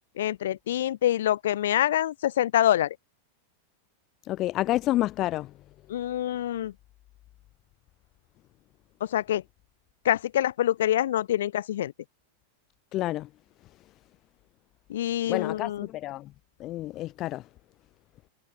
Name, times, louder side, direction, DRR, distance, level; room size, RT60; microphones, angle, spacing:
voice 1, 0.2-3.0 5.9-6.7 9.0-9.4 10.0-11.9 14.9-15.9, left 12 dB, 60° left, 3.2 m, -26 dB
voice 2, 4.2-5.5 12.9-13.3 15.3-16.3 16.6-17.5, left 15 dB, 35° left, 1.8 m, -29 dB
figure-of-eight pair, 90°, 0 cm